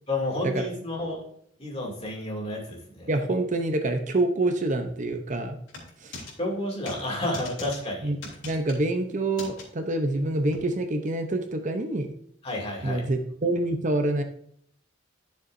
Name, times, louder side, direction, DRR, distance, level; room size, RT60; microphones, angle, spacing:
voice 1, 0.1-1.2 1.6-3.1 6.4-8.1 12.4-13.0, left 1 dB, 30° left, -1 dB, 2.5 m, -31 dB
voice 2, 3.1-5.6 6.0-6.2 8.0-8.2 8.4-12.1 12.8-14.2, right 2 dB, 40° right, 6 dB, 0.7 m, -26 dB
sound 1, 5.7-6.3 6.9-7.0 7.3-7.8 8.2-8.8 9.4-9.6 10.5-10.6, left 3 dB, 70° left, 3.4 m, -40 dB
12.0 x 6.9 x 2.6 m, 0.65 s
head